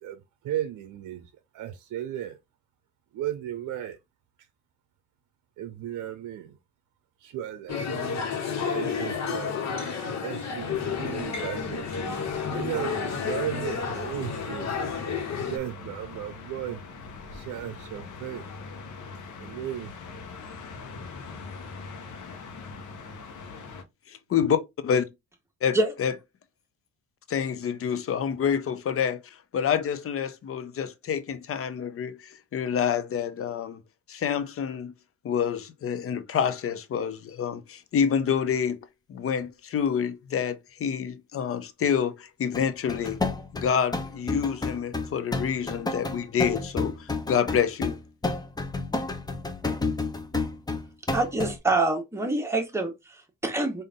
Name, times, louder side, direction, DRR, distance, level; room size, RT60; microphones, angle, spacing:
voice 1, 0.0-2.4 3.1-4.0 5.6-6.6 7.2-8.1 8.4-9.6 10.2-12.0 12.5-14.7 15.5-16.8 17.3-18.5 19.4-19.9, right 11 dB, 75° right, 0.6 m, -35 dB
sound 1, 7.7-15.6, left 6 dB, 65° left, 1.3 m, -31 dB
sound 2, 10.6-23.8, left 4 dB, 80° left, 0.9 m, -42 dB
voice 2, 24.1-25.1 25.6-26.1 27.3-29.2 29.5-33.8 34.1-34.9 35.2-38.8 39.1-43.2 43.5-48.0, left 7 dB, 45° left, 0.7 m, -27 dB
sound 3, 42.5-51.6, left 3 dB, 15° left, 0.7 m, -30 dB
voice 3, 51.1-53.8, right 2 dB, 10° right, 1.2 m, -26 dB
3.7 x 2.6 x 3.6 m
cardioid pair, 90°, 30 cm